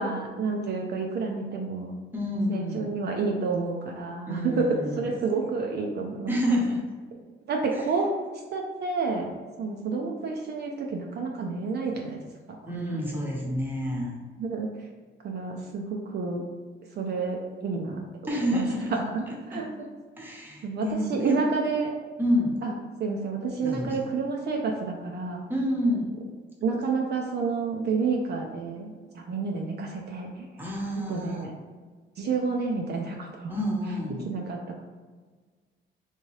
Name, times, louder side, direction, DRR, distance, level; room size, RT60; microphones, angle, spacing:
voice 1, 0.0-1.9 2.5-6.3 7.5-8.1 8.5-9.3 9.6-12.2 12.5-13.0 14.4-14.7 15.2-16.4 17.0-18.0 18.5-18.6 18.9-19.7 20.6-21.9 22.6-22.7 23.0-25.4 26.6-30.5 31.1-31.5 32.2-33.5 34.2-34.8, right 4 dB, 55° right, 0 dB, 0.5 m, -29 dB
voice 2, 2.1-2.9 4.3-5.1 6.3-6.9 7.7-7.8 12.7-14.1 18.2-18.9 19.3-19.6 20.2-21.4 22.2-22.6 23.6-24.1 25.5-26.1 30.6-31.5 33.5-34.2, equal, 10° right, -3 dB, 0.9 m, -28 dB
3.5 x 2.8 x 3.1 m, 1.4 s
cardioid pair, 125°, 20 cm